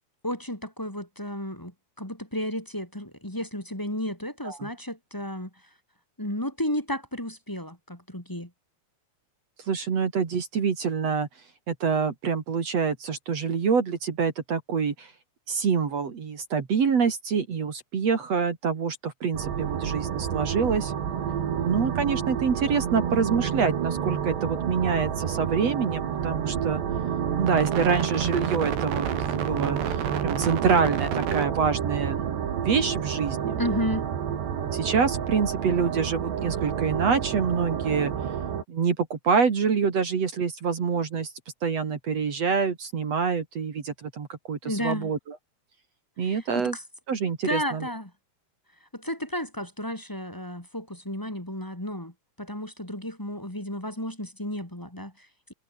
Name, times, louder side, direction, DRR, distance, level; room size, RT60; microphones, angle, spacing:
voice 1, 0.2-5.5 6.2-8.5 33.6-34.1 44.6-45.1 46.3-46.8 47.4-48.1 48.9-52.1 52.4-55.5, equal, 5° left, 2.6 m, -33 dB
voice 2, 9.7-11.3 11.7-15.1 15.5-20.9 21.6-26.8 27.4-29.1 29.3-32.2 32.6-33.6 34.6-38.1 38.7-41.3 41.6-45.4 46.2-46.8 47.1-47.9, right 6 dB, 45° right, 3.0 m, -26 dB
sound 1, 19.3-38.6, right 8 dB, 85° right, 5.4 m, -29 dB
omnidirectional pair, 4.8 m